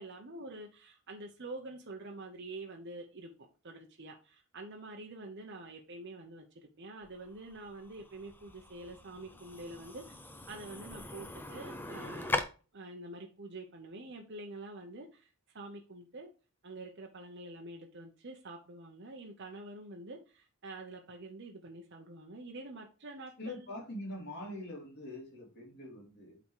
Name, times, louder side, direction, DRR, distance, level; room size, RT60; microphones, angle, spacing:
voice 1, 0.0-10.2 10.5-12.3 12.7-16.3 16.6-23.7, right 2 dB, 50° right, 1.0 m, -47 dB
sound 1, 7.0-12.4, left 2 dB, 10° left, 0.6 m, -41 dB
voice 2, 23.4-26.4, left 1 dB, 50° left, 3.2 m, -43 dB
8.3 x 4.0 x 4.8 m
head